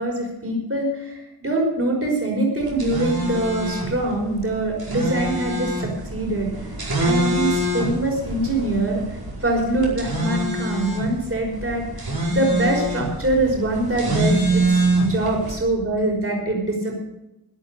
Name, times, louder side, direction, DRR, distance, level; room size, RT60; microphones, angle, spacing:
voice 1, 0.0-6.5 7.0-17.0, right 2 dB, 35° right, -1 dB, 5.2 m, -24 dB
sound 1, 2.6-15.6, right 1 dB, 60° right, 5.2 m, -25 dB
13.0 x 10.5 x 6.7 m, 0.91 s
cardioid pair, 65°, 41 cm